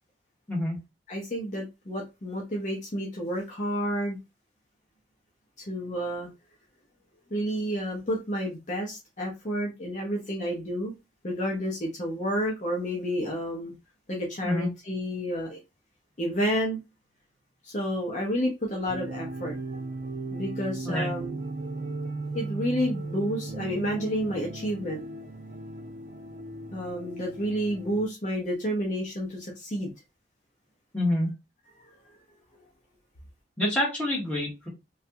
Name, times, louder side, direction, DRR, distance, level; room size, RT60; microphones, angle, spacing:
voice 1, 1.1-4.2 5.6-6.3 7.3-10.9 11.2-13.7 14.1-15.6 16.2-16.8 17.6-19.6 20.3-21.4 22.3-25.0 26.7-29.9, equal, 40° left, 0.7 m, -30 dB
sound 1, 18.9-28.0, right 2 dB, 45° right, 0.5 m, -37 dB
voice 2, 20.8-21.1 30.9-31.3 33.6-34.7, left 1 dB, 10° left, 1.5 m, -27 dB
3.2 x 2.3 x 2.7 m
head